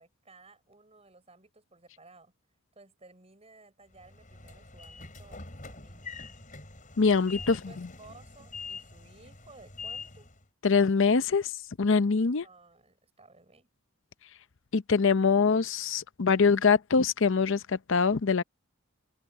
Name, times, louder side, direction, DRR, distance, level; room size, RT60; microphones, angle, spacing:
voice 1, 0.0-2.3 2.7-5.4 5.6-6.2 7.2-10.3 12.4-13.7, right 3 dB, 30° right, 6.1 m, -56 dB
Train / Sliding door, 3.9-10.4, left 4 dB, 40° left, 7.0 m, -44 dB
voice 2, 7.0-7.6 10.6-11.5 11.8-12.4 14.7-18.4, left 5 dB, 60° left, 0.6 m, -23 dB
head